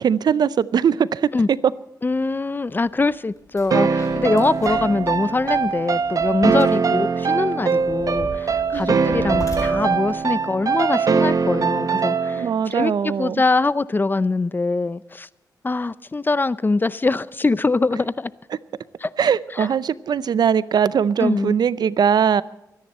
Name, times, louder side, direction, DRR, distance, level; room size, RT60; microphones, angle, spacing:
voice 1, 0.0-1.6 8.7-9.1 12.4-13.4 19.2-22.4, right 7 dB, 70° right, 18 dB, 0.5 m, -20 dB
voice 2, 2.0-15.3 15.6-18.3 19.0-19.1 19.6-19.7 21.2-21.6, left 3 dB, 30° left, 18 dB, 0.5 m, -23 dB
sound 1, 2.8-3.0 3.4-11.6, left 2 dB, 50° left, 6.9 m, -39 dB
sound 2, 3.7-12.6, right 5 dB, 55° right, 0.9 m, -21 dB
24.0 x 10.5 x 4.2 m, 0.88 s
cardioid pair, 80°, 7 cm